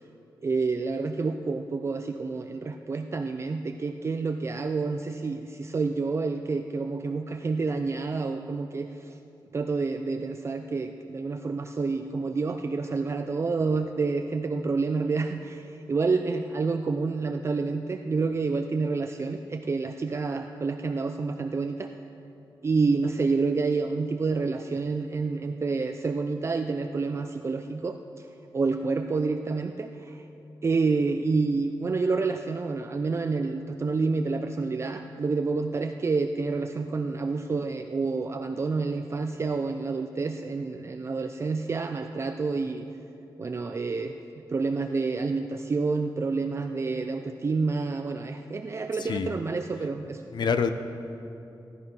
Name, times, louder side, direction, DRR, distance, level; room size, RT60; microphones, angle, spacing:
voice 1, 0.4-9.1 9.5-21.9 22.6-28.3 28.5-30.2 30.6-42.9 43.4-44.2 44.5-50.2, right 4 dB, 35° right, 6 dB, 0.4 m, -28 dB
voice 2, 49.0-49.4 50.3-50.7, left 6 dB, 65° left, 9 dB, 0.8 m, -26 dB
15.5 x 11.0 x 5.5 m, 2.8 s
wide cardioid pair, 120°, 8 cm